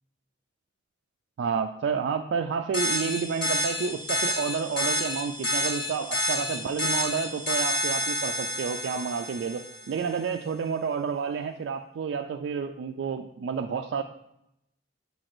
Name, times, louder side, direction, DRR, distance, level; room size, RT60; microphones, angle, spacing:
voice 1, 1.4-14.0, right 6 dB, 70° right, 5 dB, 0.3 m, -30 dB
sound 1, 2.7-9.9, left 1 dB, 55° left, 1.5 m, -29 dB
6.9 x 5.9 x 2.5 m, 0.80 s
head